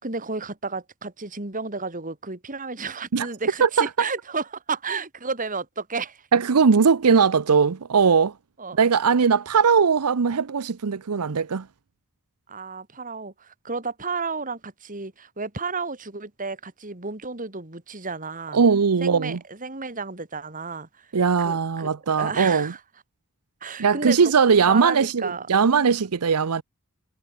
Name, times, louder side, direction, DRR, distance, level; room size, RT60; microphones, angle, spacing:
voice 1, 0.0-6.3 8.6-8.8 12.5-18.6 19.0-21.1 21.4-21.9 22.2-22.8 23.6-25.5, right 4 dB, 35° right, 2.6 m, -32 dB
voice 2, 6.3-8.3 8.8-11.6 18.5-19.4 21.1-22.7 23.8-26.6, right 5 dB, 90° right, 0.7 m, -20 dB
head